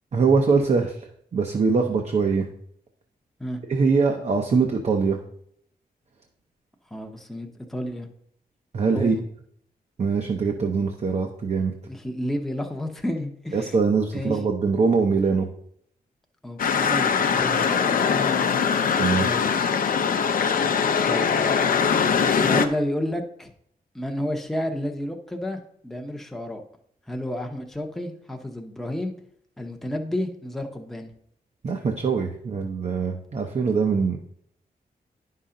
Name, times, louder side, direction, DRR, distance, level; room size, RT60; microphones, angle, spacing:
voice 1, 0.1-1.0 1.3-2.5 3.7-5.2 8.7-9.2 10.0-11.7 13.5-15.5 19.0-19.4 31.6-34.2, right 4 dB, 45° right, 3 dB, 0.7 m, -22 dB
voice 2, 6.9-8.1 8.9-9.2 11.9-13.7 14.1-14.4 16.4-18.4 19.2-19.6 21.1-21.3 22.3-23.5 23.9-26.6 27.1-29.1 29.6-31.1, left 1 dB, ahead, 3 dB, 0.7 m, -31 dB
sound 1, 16.6-22.7, left 6 dB, 65° left, 0.6 m, -22 dB
10.0 x 5.7 x 3.8 m, 0.68 s
wide cardioid pair, 160°, 16 cm